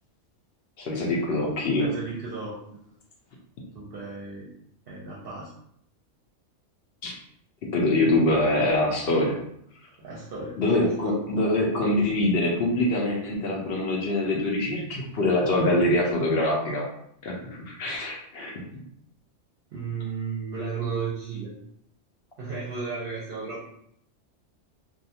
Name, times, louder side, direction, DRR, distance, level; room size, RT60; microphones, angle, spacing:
voice 1, 0.8-1.9 7.0-7.1 7.7-9.4 10.6-16.9 17.2-18.8, left 1 dB, 65° left, -1 dB, 0.7 m, -24 dB
voice 2, 1.8-2.9 3.7-4.5 4.9-5.5 10.0-11.2 19.7-21.5 22.4-23.7, right 4 dB, 55° right, -6 dB, 0.7 m, -34 dB
2.5 x 2.3 x 2.7 m, 0.71 s
omnidirectional pair, 1.3 m